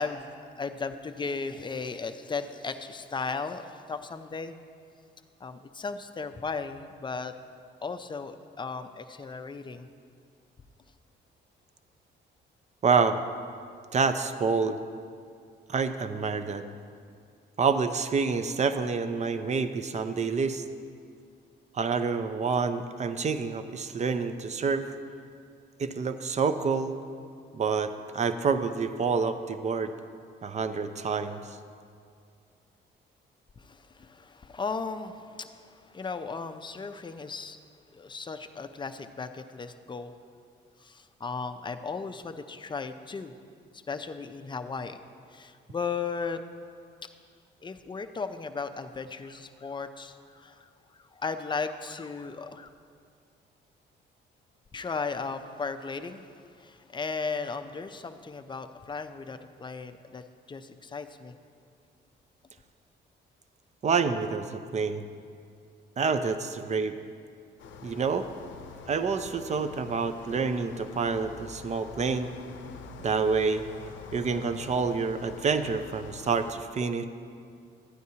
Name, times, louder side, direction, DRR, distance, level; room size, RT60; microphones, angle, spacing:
voice 1, 0.0-4.6 5.4-7.3 7.8-9.9 33.6-37.6 37.9-40.1 40.8-43.3 43.7-45.0 45.3-46.4 47.6-50.7 51.0-52.7 54.7-61.3, left 4 dB, 25° left, 8 dB, 0.5 m, -36 dB
voice 2, 12.8-13.2 13.9-14.8 15.7-16.6 17.6-20.6 21.7-24.9 25.8-27.0 27.5-29.9 30.4-31.4 63.8-65.0 66.0-67.0 67.8-68.3 68.9-72.3 73.0-73.6 74.1-77.0, right 5 dB, 35° right, 10 dB, 0.6 m, -28 dB
sound 1, 67.6-76.5, left 6 dB, 70° left, 0.6 m, -46 dB
13.0 x 9.2 x 2.8 m, 2.3 s
cardioid pair, 90°, 20 cm